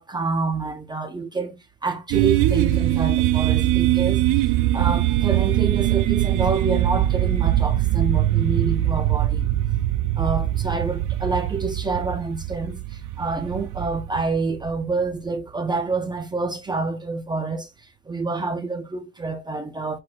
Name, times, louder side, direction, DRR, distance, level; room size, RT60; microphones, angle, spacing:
voice 1, 0.0-9.4 10.2-17.7 18.1-20.0, right 4 dB, 15° right, 0.5 m, -27 dB
sound 1, 2.1-15.0, right 14 dB, 80° right, 0.6 m, -22 dB
5.9 x 3.1 x 2.4 m
cardioid pair, 160°, 31 cm